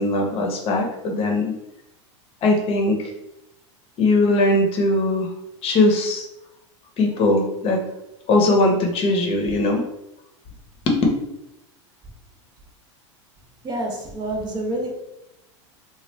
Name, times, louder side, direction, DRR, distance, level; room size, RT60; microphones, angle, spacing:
voice 1, 0.0-1.5 2.4-3.0 4.0-5.3 5.6-6.3 7.0-7.8 8.3-9.8 10.9-11.0, left 2 dB, 40° left, 2 dB, 0.8 m, -20 dB
voice 2, 13.6-14.9, right 1 dB, 30° right, 1 dB, 0.7 m, -27 dB
3.0 x 2.4 x 3.2 m, 0.86 s
hypercardioid pair, 115°, 16 cm